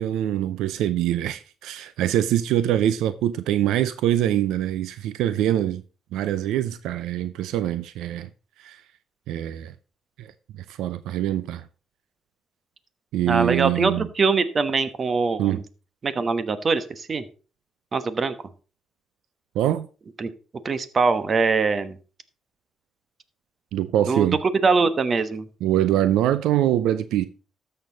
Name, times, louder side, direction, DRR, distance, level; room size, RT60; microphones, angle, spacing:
voice 1, 0.0-5.8 6.1-8.3 8.6-8.8 9.3-9.7 10.2-10.3 10.8-11.7 13.1-14.1 15.4-15.6 19.6-19.9 23.7-24.4 25.6-27.3, right 12 dB, 90° right, 0.5 m, -24 dB
voice 2, 13.3-15.6 16.0-17.2 17.9-18.4 20.2-20.3 20.6-22.0 24.1-24.3 24.6-25.5, right 4 dB, 40° right, 1.1 m, -22 dB
12.5 x 6.8 x 3.9 m
cardioid pair, 90°, 0 cm